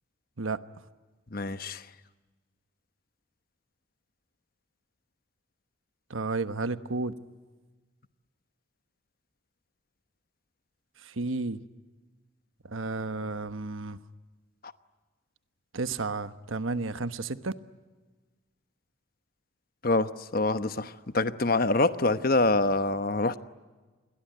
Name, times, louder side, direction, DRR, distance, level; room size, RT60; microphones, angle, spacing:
voice 1, 1.3-1.8 14.6-14.7 19.8-23.4, left 2 dB, 45° left, 1.0 m, -26 dB
voice 2, 6.1-7.1 11.0-11.6 12.7-14.0 15.7-17.5, right 3 dB, 85° right, 1.1 m, -32 dB
28.5 x 22.0 x 9.3 m
head